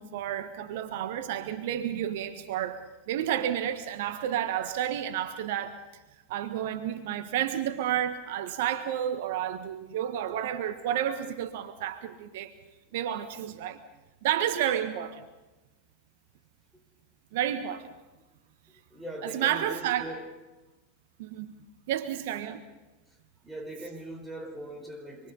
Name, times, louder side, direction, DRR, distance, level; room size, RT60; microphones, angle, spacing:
voice 1, 0.0-5.8 6.3-12.5 12.9-13.8 14.2-15.1 17.3-17.9 19.2-20.1 21.2-21.5 21.9-22.6, right 10 dB, 60° right, 1.5 m, -31 dB
voice 2, 18.7-20.3 23.1-25.3, right 1 dB, ahead, 5.3 m, -41 dB
27.0 x 23.5 x 5.6 m
hypercardioid pair, 90°, 0 cm